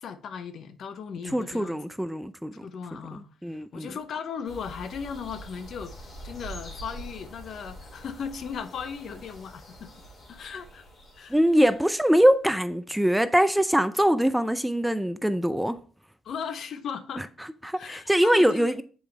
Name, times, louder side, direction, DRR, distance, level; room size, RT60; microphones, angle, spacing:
voice 1, 0.0-1.8 2.6-9.9 10.3-10.8 11.2-11.4 16.2-17.2 17.8-18.8, left 6 dB, 65° left, 0.8 m, -37 dB
voice 2, 1.3-2.7 2.9-3.9 11.3-15.8 17.2-17.3 17.6-18.8, equal, 5° right, 0.4 m, -23 dB
sound 1, 4.4-12.2, right 1 dB, 50° left, 2.8 m, -45 dB
7.1 x 5.1 x 3.3 m
cardioid pair, 90°, 0 cm